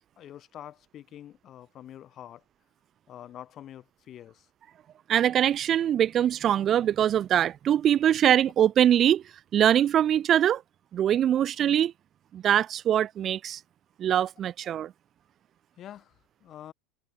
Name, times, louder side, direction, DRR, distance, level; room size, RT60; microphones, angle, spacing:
voice 1, 0.2-2.4 3.1-4.5 15.8-16.7, left 11 dB, 30° left, 7.6 m, -46 dB
voice 2, 5.1-9.2 9.5-10.6 10.9-11.9 12.3-13.6 14.0-14.9, right 10 dB, 30° right, 0.5 m, -23 dB
supercardioid pair, 155°, 0 cm